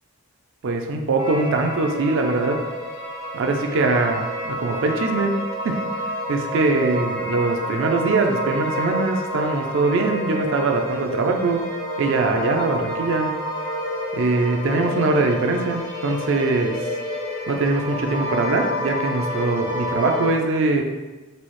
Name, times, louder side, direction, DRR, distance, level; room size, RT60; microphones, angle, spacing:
voice 1, 0.6-2.6 3.3-5.4 5.6-5.8 6.3-11.7 12.0-13.3 14.1-16.8 17.5-20.8, right 3 dB, 60° right, 3 dB, 0.4 m, -22 dB
sound 1, 1.2-20.3, equal, 75° left, 1.4 m, -29 dB
4.1 x 2.0 x 3.1 m, 1.2 s
head